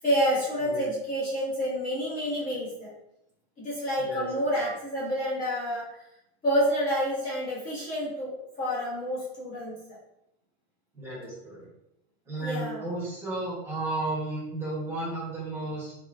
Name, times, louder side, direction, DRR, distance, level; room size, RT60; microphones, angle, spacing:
voice 1, 0.0-2.9 3.6-6.0 6.4-9.8 12.4-12.8, equal, 25° left, -6 dB, 0.7 m, -28 dB
voice 2, 4.0-4.6 10.9-11.7 12.3-15.9, right 2 dB, 5° right, -6 dB, 0.8 m, -33 dB
3.6 x 3.2 x 2.4 m, 0.84 s
supercardioid pair, 175°, 33 cm